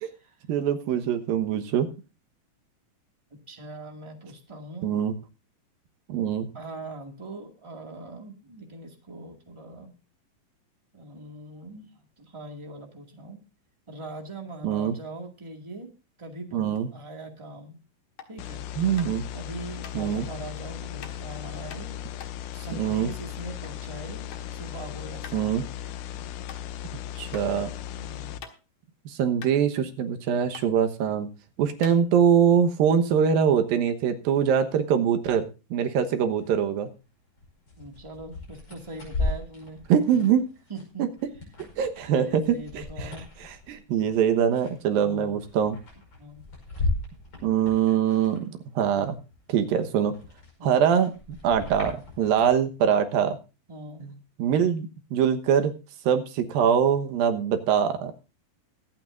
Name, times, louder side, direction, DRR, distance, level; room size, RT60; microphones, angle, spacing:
voice 1, 0.5-1.9 4.8-5.1 6.1-6.5 14.6-14.9 16.5-16.9 18.8-19.2 19.9-20.3 22.7-23.1 25.3-25.6 27.2-27.7 29.1-31.3 31.6-36.9 39.9-40.4 41.0-41.1 41.8-43.1 43.4-45.8 47.4-49.2 49.5-50.2 50.6-53.4 54.0-54.1 54.4-55.7 56.1-58.1, right 8 dB, 85° right, 7 dB, 3.0 m, -23 dB
voice 2, 3.3-5.0 6.5-9.9 10.9-11.9 12.2-13.4 13.9-15.9 16.2-17.7 18.3-18.7 19.3-21.9 22.5-24.2 24.5-25.6 26.1-26.2 28.0-28.4 37.8-39.8 40.1-40.2 40.7-41.1 42.1-43.3 45.0-45.4 46.2-46.4 50.6-50.9 53.7-54.1, right 2 dB, 15° right, 2 dB, 1.1 m, -41 dB
sound 1, 18.1-18.4 19.0-19.3 19.8-20.0 21.0-21.2 21.7-23.8 24.1-24.5 24.8-24.9 25.2-25.4 25.9-26.0 26.4-26.6 27.3-27.4 27.9-28.8 29.1-29.2 29.4-30.2 30.5-30.7 31.3-31.4 31.8-32.5, left 7 dB, 60° left, 2.5 m, -45 dB
sound 2, 18.4-28.4, left 10 dB, 75° left, 2.0 m, -37 dB
sound 3, 36.4-36.5 36.9-48.7 49.1-52.6, left 2 dB, 30° left, 5.9 m, -36 dB
24.0 x 9.0 x 2.6 m, 0.31 s
omnidirectional pair, 4.0 m